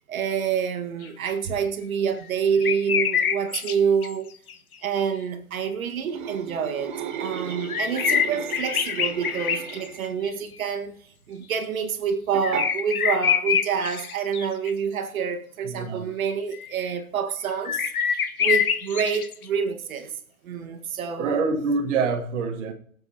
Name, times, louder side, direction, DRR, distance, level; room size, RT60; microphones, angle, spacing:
voice 1, 0.0-4.3 4.8-20.1 20.4-21.4, right 6 dB, 75° right, 1.9 m, -27 dB
sound 1, 1.0-1.1 2.6-3.7 4.0-4.1 4.5-4.6 5.0-5.1 7.3-9.9 10.2-10.3 12.4-14.7 16.5-16.7 17.5-19.4, left 8 dB, 85° left, 1.5 m, -25 dB
sound 2, 6.1-10.3 12.3-12.7, right 9 dB, 35° right, 0.9 m, -35 dB
voice 2, 15.7-16.1 21.2-22.7, right 4 dB, 55° right, 1.5 m, -26 dB
23.0 x 7.8 x 2.9 m
hypercardioid pair, 150°, 42 cm